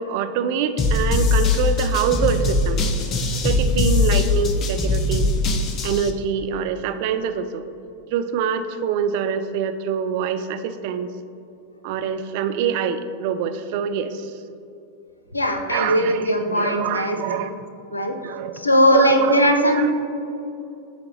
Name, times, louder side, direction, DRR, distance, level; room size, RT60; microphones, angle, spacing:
voice 1, 0.0-2.8 3.4-5.3 5.8-7.6 8.1-11.1 11.8-14.3 15.7-17.6 18.2-18.6 18.9-19.9, right 7 dB, 50° right, 10 dB, 0.3 m, -25 dB
sound 1, 0.8-6.1, left 3 dB, 30° left, 0.6 m, -21 dB
voice 2, 15.3-17.2 17.9-18.1 18.6-19.9, left 1 dB, 80° left, 5 dB, 0.6 m, -19 dB
10.5 x 3.8 x 2.9 m, 2.8 s
figure-of-eight pair, 90°, 0 cm